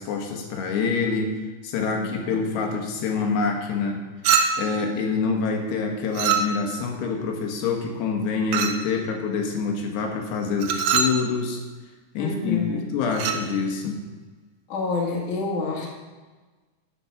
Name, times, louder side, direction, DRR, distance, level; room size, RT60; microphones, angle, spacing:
voice 1, 0.0-1.3 1.6-4.0 4.6-11.6 12.1-14.0, left 4 dB, 70° left, 2 dB, 3.3 m, -26 dB
voice 2, 1.9-2.5 12.2-12.8 14.7-15.9, left 3 dB, 55° left, -3 dB, 2.7 m, -28 dB
Chink clink, 4.2-4.8 6.1-6.8 8.5-8.9 10.6-11.2 13.1-13.5, right 6 dB, 80° right, 2.3 m, -23 dB
14.0 x 6.0 x 5.9 m, 1.3 s
omnidirectional pair, 5.3 m